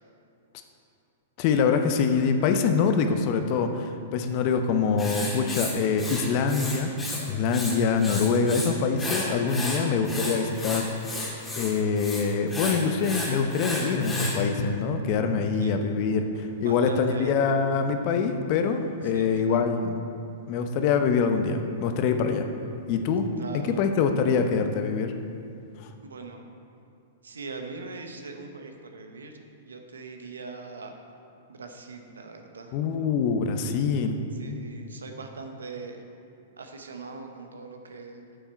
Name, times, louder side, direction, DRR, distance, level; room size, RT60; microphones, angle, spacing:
voice 1, 1.4-6.9 7.3-10.9 11.6-20.0 20.5-22.5 22.9-23.3 23.6-25.1 32.7-34.2, left 5 dB, 45° left, 7 dB, 0.8 m, -24 dB
Writing, 5.0-7.2 7.5-8.7 9.0-14.4, left 1 dB, 10° left, 1.9 m, -33 dB
sound 1, 13.7-16.4, equal, 75° left, 1.1 m, -35 dB
voice 2, 15.6-15.9 16.6-17.4 19.0-19.6 23.4-23.8 26.0-26.4 27.2-30.9 31.5-32.7 34.3-36.0 36.6-38.3, right 4 dB, 85° right, 4 dB, 1.0 m, -41 dB
9.1 x 7.1 x 4.4 m, 2.5 s
hypercardioid pair, 115°, 0 cm